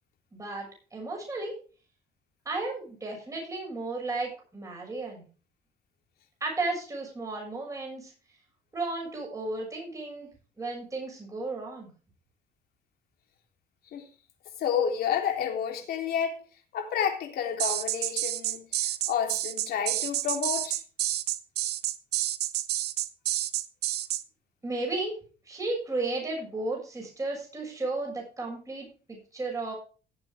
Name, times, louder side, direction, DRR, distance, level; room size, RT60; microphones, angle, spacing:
voice 1, 0.3-0.7 0.9-1.5 2.5-5.3 6.4-8.1 8.7-10.3 10.6-11.9 24.6-25.2 25.5-29.7, right 2 dB, 20° right, 6.9 m, -34 dB
voice 2, 14.6-16.4 16.7-20.8, left 8 dB, 65° left, 3.4 m, -30 dB
sound 1, 17.6-24.2, right 14 dB, 75° right, 1.0 m, -29 dB
17.5 x 7.9 x 3.6 m
cardioid pair, 110°, 17 cm